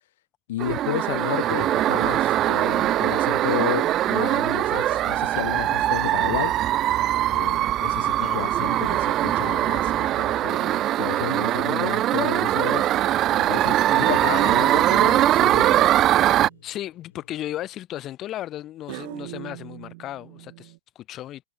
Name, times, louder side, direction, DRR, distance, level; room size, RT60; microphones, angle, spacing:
voice 1, 0.5-6.5 7.3-12.9 13.4-15.9, left 14 dB, 60° left, 1.8 m, -32 dB
sound 1, 0.6-16.5, right 13 dB, 25° right, 0.4 m, -22 dB
sound 2, 2.5-17.7, left 10 dB, 75° left, 5.6 m, -59 dB
voice 2, 8.0-8.5 13.9-14.1 16.6-21.4, left 13 dB, 25° left, 1.2 m, -35 dB
sound 3, 16.1-16.6 18.9-20.8, right 24 dB, 45° right, 2.4 m, -41 dB
supercardioid pair, 160°, 0 cm